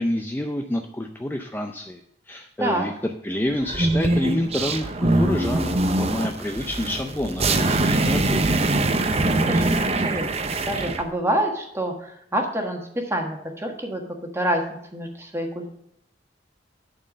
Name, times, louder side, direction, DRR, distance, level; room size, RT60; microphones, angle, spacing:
voice 1, 0.0-2.0 2.3-2.9 3.2-8.5, left 1 dB, 10° left, 4 dB, 0.4 m, -28 dB
sound 1, 3.6-11.0, right 2 dB, 35° right, 0.6 m, -23 dB
voice 2, 9.1-14.0 14.3-14.6 14.9-15.7, right 1 dB, 15° right, 2 dB, 1.4 m, -27 dB
10.5 x 4.5 x 6.3 m, 0.75 s
head